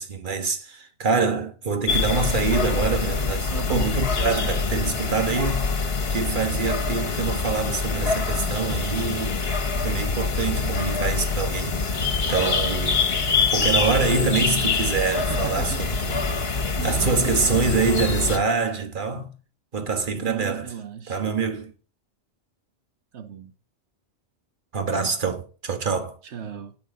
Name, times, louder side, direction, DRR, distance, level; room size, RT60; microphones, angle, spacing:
voice 1, 0.0-9.4 9.8-12.0 12.3-13.0 13.5-16.1 16.8-19.3 19.7-20.7 21.1-21.7 24.7-26.2, right 4 dB, 45° right, 1.5 m, -25 dB
sound 1, 1.9-18.4, left 4 dB, 60° left, 1.5 m, -25 dB
voice 2, 3.5-3.9 15.1-15.8 16.8-17.9 20.2-21.2 23.1-23.5 26.2-26.8, right 7 dB, 75° right, 1.1 m, -35 dB
9.3 x 8.7 x 5.1 m
omnidirectional pair, 1.2 m